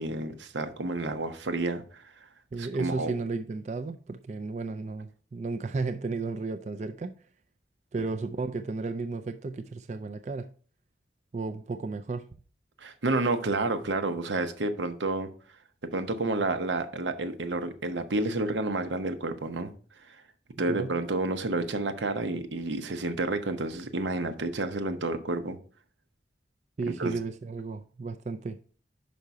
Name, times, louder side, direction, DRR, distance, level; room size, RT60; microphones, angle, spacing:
voice 1, 0.0-2.3 2.6-3.1 12.8-15.3 15.9-19.7 20.1-20.2 20.6-25.6 26.9-27.1, right 2 dB, 90° right, 0.8 m, -30 dB
voice 2, 2.5-7.1 7.9-10.5 11.3-12.3 20.7-20.9 26.8-28.6, right 3 dB, 40° right, 0.3 m, -33 dB
5.5 x 5.1 x 4.6 m
head